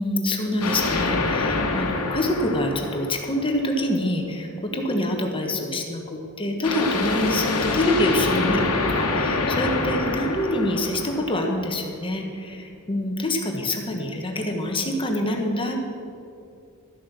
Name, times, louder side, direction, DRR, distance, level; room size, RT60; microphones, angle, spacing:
voice 1, 0.0-15.9, left 1 dB, 25° left, 3 dB, 1.2 m, -26 dB
sound 1, 0.6-3.7 6.6-11.8, left 3 dB, 90° left, 1.3 m, -26 dB
12.0 x 7.7 x 6.8 m, 2.5 s
head